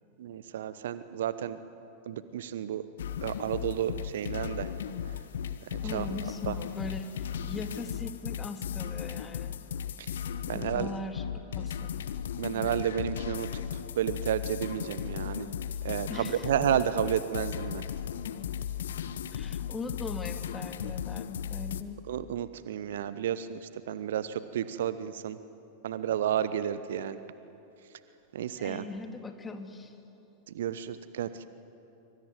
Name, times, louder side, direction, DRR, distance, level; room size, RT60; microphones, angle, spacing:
voice 1, 0.2-1.6 2.1-2.8 3.2-4.7 5.9-6.0 10.5-10.9 12.4-13.5 14.0-15.5 15.8-17.8 22.1-23.6 23.9-24.2 24.5-25.4 25.8-27.2 28.3-28.8 30.5-31.5, right 10 dB, 60° right, 14 dB, 1.0 m, -31 dB
sound 1, 3.0-21.8, left 9 dB, 60° left, 1.0 m, -36 dB
voice 2, 5.8-9.5 10.5-11.9 16.1-16.5 19.3-22.0 28.6-30.0, left 3 dB, 15° left, 6 dB, 2.4 m, -40 dB
25.5 x 25.0 x 9.3 m, 2.9 s
figure-of-eight pair, 90°, 0 cm